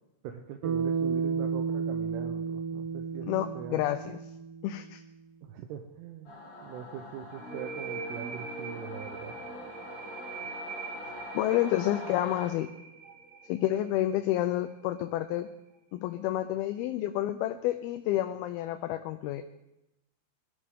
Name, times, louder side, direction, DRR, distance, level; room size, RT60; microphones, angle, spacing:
voice 1, 0.2-3.3 3.5-3.8 5.4-6.4 6.6-9.4, right 9 dB, 85° right, 4 dB, 2.9 m, -42 dB
Bass guitar, 0.6-5.0, right 6 dB, 70° right, 1.5 m, -32 dB
voice 2, 3.3-4.2 4.6-5.0 11.3-12.7 13.5-15.5 15.9-19.4, left 13 dB, 80° left, 9 dB, 2.4 m, -29 dB
Singing / Musical instrument, 6.2-12.5, left 2 dB, 30° left, 3.9 m, -44 dB
sound 1, 7.4-14.8, right 4 dB, 50° right, 1.4 m, -42 dB
21.0 x 12.5 x 3.7 m, 0.91 s
omnidirectional pair, 4.6 m